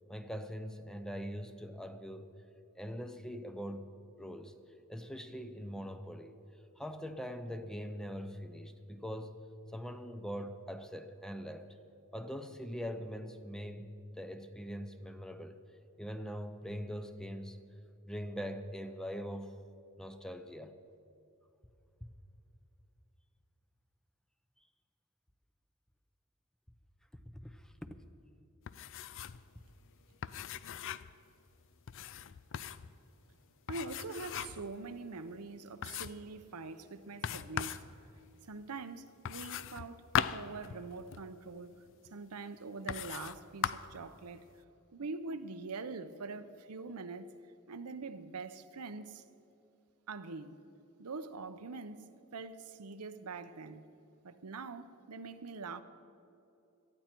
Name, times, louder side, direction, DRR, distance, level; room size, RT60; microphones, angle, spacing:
voice 1, 0.1-2.4 2.8-3.9 4.2-4.5 4.9-6.4 6.8-9.5 9.7-11.8 12.1-15.6 16.0-17.6 18.0-19.5 20.0-20.8 27.3-28.0, equal, 5° left, 0.6 m, -42 dB
sound 1, 28.7-29.4 29.7-29.8 30.2-31.2 31.9-32.9 33.7-34.7 35.2-35.3 35.8-36.3 37.2-37.9 39.2-41.3 42.0-42.1 42.9-43.4 43.6-44.0, left 9 dB, 60° left, 0.4 m, -38 dB
voice 2, 33.7-37.9 38.5-40.0 40.3-41.7 42.1-44.4 44.9-47.3 47.7-49.2 50.1-50.6 51.0-53.9 54.2-55.8, right 3 dB, 90° right, 0.7 m, -44 dB
18.5 x 13.5 x 4.5 m
head